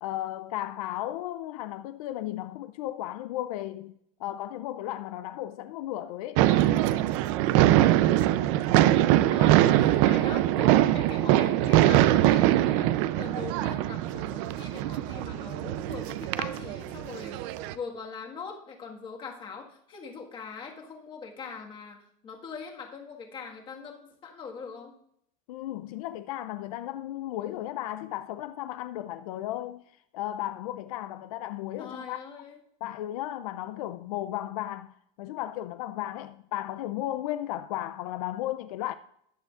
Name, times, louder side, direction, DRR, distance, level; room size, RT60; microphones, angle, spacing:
voice 1, 0.0-3.9 4.2-6.4 25.5-29.8 30.1-32.2 32.8-38.9, left 14 dB, 75° left, 0.5 m, -35 dB
sound 1, 6.4-17.7, right 14 dB, 60° right, 0.5 m, -23 dB
voice 2, 9.3-17.4 17.7-25.0 31.8-32.6, left 5 dB, 25° left, 1.7 m, -42 dB
13.5 x 8.9 x 2.5 m
supercardioid pair, 145°, 18 cm